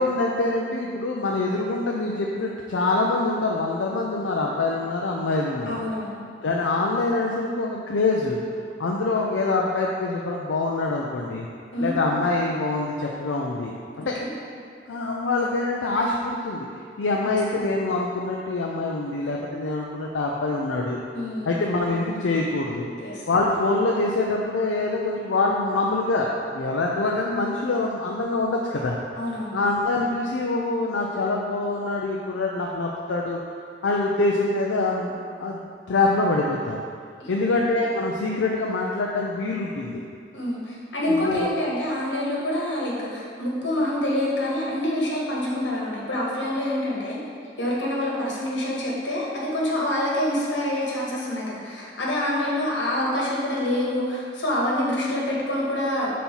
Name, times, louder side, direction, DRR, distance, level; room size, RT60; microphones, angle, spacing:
voice 1, 0.0-5.8 6.4-8.4 8.8-11.5 11.8-14.2 14.9-16.7 17.0-21.0 21.5-22.9 23.3-29.0 29.5-33.4 33.8-35.6 35.9-36.8 37.3-40.0 41.0-41.5, left 2 dB, 90° left, -2 dB, 0.5 m, -25 dB
voice 2, 5.7-6.2 11.7-11.9 14.0-14.3 17.2-17.4 21.1-21.5 23.0-23.2 29.1-29.6 37.2-37.5 40.3-47.2 47.6-56.1, left 1 dB, 70° left, -4 dB, 1.4 m, -26 dB
5.5 x 4.2 x 4.4 m, 2.2 s
head